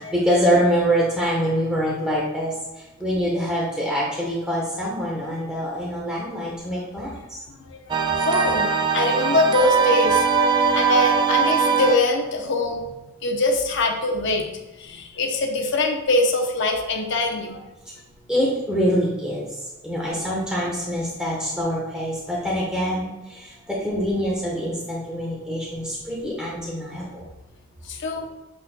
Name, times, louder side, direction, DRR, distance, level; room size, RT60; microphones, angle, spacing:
voice 1, 0.0-7.1 18.3-27.2, equal, 5° right, -5 dB, 1.1 m, -25 dB
voice 2, 7.5-10.3 10.7-12.9 13.2-14.5 14.8-17.6 27.8-28.3, left 2 dB, 55° left, 2 dB, 0.8 m, -23 dB
sound 1, 7.9-12.2, right 5 dB, 20° right, 0.3 m, -20 dB
7.5 x 5.9 x 2.2 m, 1.1 s
head